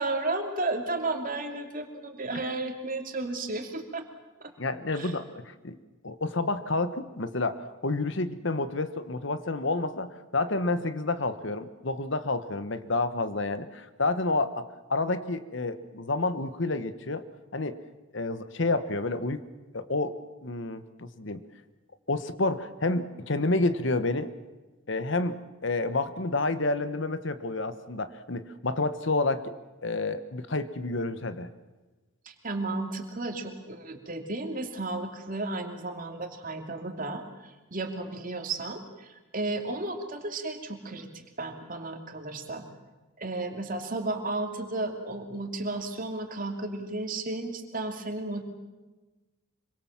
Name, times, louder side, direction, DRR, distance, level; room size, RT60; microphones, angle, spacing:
voice 1, 0.0-4.0 4.4-4.5 4.9-5.2 32.3-42.7 43.2-48.4, right 2 dB, 40° right, 4 dB, 2.8 m, -33 dB
voice 2, 4.6-5.8 6.0-17.2 17.5-17.8 18.1-19.4 19.7-20.2 20.4-21.4 22.1-24.3 24.9-29.5 29.8-31.5, left 2 dB, 60° left, 12 dB, 1.2 m, -29 dB
25.5 x 23.5 x 7.4 m, 1.2 s
head